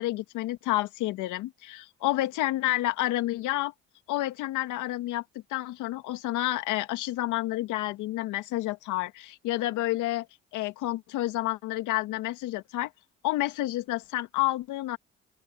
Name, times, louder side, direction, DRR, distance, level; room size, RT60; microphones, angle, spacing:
voice 1, 0.0-3.7 4.1-5.2 5.5-10.3 10.5-12.9 13.2-15.0, left 16 dB, 80° left, 2.0 m, -29 dB
open air
supercardioid pair, 60°, 30 cm